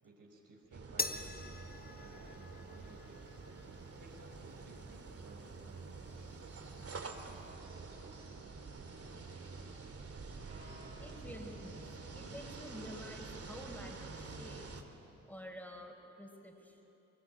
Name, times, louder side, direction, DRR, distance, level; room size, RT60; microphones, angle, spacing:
voice 1, 0.0-3.4 4.0-6.4, right 2 dB, 55° right, 0 dB, 5.3 m, -58 dB
sound 1, 0.7-14.8, right 4 dB, 35° right, 2.5 m, -48 dB
sound 2, 1.0-7.6, left 3 dB, 20° left, 1.5 m, -46 dB
sound 3, 6.0-13.6, right 1 dB, 90° right, 4.2 m, -61 dB
voice 2, 11.0-14.7 15.2-16.8, equal, 5° left, 2 dB, 5.0 m, -49 dB
22.5 x 22.5 x 9.1 m, 3.0 s
hypercardioid pair, 45°, 40 cm